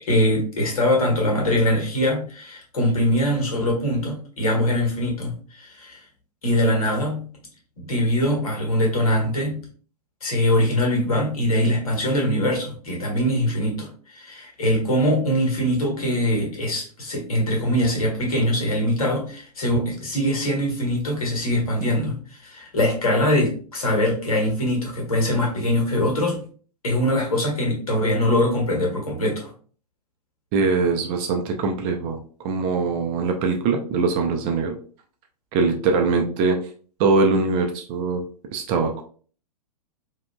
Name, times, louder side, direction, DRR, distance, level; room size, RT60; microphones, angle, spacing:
voice 1, 0.1-6.0 6.4-7.3 7.8-9.7 10.2-26.4 26.8-29.5, left 1 dB, 60° left, 0 dB, 1.5 m, -22 dB
voice 2, 30.5-34.7 35.5-36.6 37.0-38.2 38.5-39.0, right 4 dB, 25° right, 4 dB, 0.4 m, -22 dB
4.9 x 2.8 x 2.2 m, 0.43 s
figure-of-eight pair, 105°, 20 cm